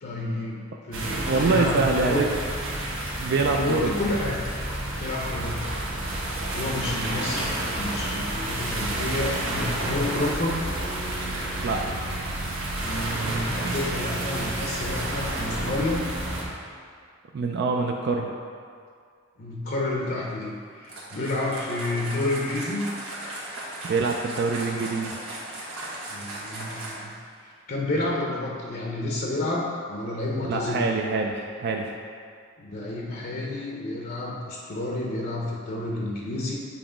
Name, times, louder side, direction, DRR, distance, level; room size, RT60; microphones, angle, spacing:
voice 1, 0.0-2.2 3.5-4.4 5.0-5.8 6.5-10.6 12.8-16.1 19.4-22.9 26.1-27.1 27.7-30.8 32.6-36.6, left 2 dB, 50° left, -2 dB, 0.6 m, -30 dB
sound 1, 0.9-16.4, right 1 dB, 75° right, 1.2 m, -30 dB
voice 2, 1.3-2.3 3.2-3.9 11.6-11.8 17.3-18.3 23.8-25.2 30.5-31.9, right 3 dB, 55° right, 1 dB, 0.4 m, -25 dB
sound 2, 20.8-27.2, right 1 dB, 90° right, 1.4 m, -37 dB
7.2 x 2.9 x 5.0 m, 2.2 s
head